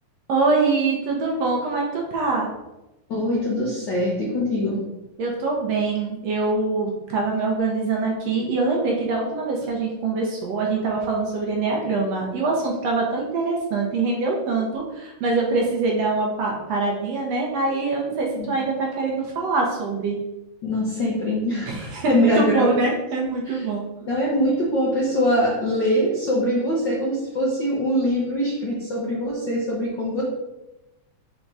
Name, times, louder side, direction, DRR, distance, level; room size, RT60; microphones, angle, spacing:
voice 1, 0.3-2.5 5.2-20.2 21.7-23.8, right 3 dB, 70° right, -1 dB, 1.8 m, -24 dB
voice 2, 3.1-4.8 18.3-18.5 20.6-22.7 23.5-23.6 24.1-30.2, equal, 65° left, -4 dB, 1.1 m, -23 dB
5.4 x 3.7 x 4.7 m, 0.97 s
omnidirectional pair, 3.5 m